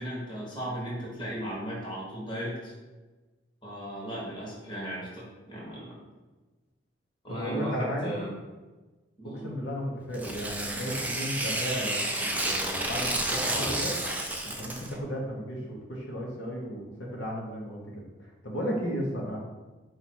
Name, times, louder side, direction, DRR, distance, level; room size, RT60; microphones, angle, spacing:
voice 1, 0.0-2.7 3.6-6.0 7.2-8.3 9.2-9.5, right 1 dB, 25° left, -5 dB, 1.1 m, -36 dB
voice 2, 7.3-8.2 9.3-13.9 14.4-18.0 18.4-19.4, equal, 80° left, -2 dB, 0.9 m, -34 dB
Tearing, 10.1-15.0, right 1 dB, 10° right, 0.3 m, -30 dB
4.5 x 2.5 x 4.3 m, 1.2 s
head